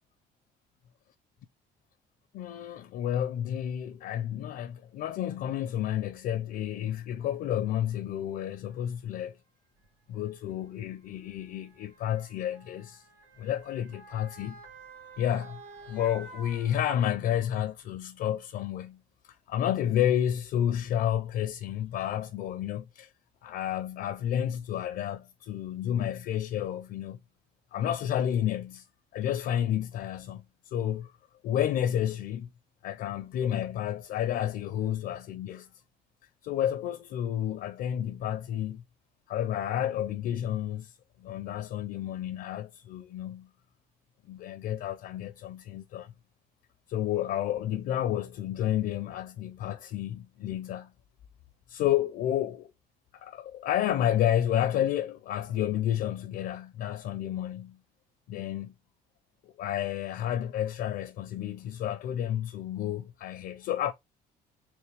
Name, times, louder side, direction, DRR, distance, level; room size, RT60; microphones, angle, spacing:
voice 1, 2.3-9.4 10.1-13.0 13.4-14.6 15.2-15.6 15.9-19.0 19.5-23.1 23.4-27.2 27.7-28.8 29.1-31.1 31.4-32.5 32.8-35.7 36.4-38.8 39.3-43.5 44.3-46.1 46.9-50.9 51.7-52.7 53.1-57.8 58.3-58.7 59.4-63.9, left 11 dB, 65° left, 0.5 m, -31 dB
Motor vehicle (road) / Siren, 7.4-7.5 8.5-8.7 9.8-17.4 17.8-17.9, right 3 dB, 90° right, 2.0 m, -51 dB
3.4 x 3.3 x 3.2 m
cardioid pair, 110°, 17 cm